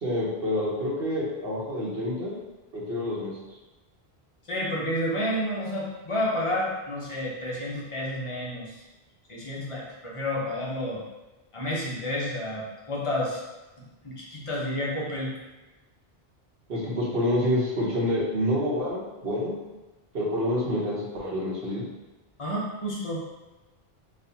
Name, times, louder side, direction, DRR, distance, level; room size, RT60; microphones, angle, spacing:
voice 1, 0.0-2.3 2.7-3.3 16.7-19.6 20.1-21.9, left 1 dB, 65° right, -5 dB, 1.2 m, -27 dB
voice 2, 4.5-8.8 9.3-11.0 11.5-13.4 14.0-15.3 22.4-23.2, left 1 dB, 35° left, -4 dB, 0.8 m, -30 dB
4.2 x 2.6 x 2.7 m, 1.1 s
omnidirectional pair, 1.1 m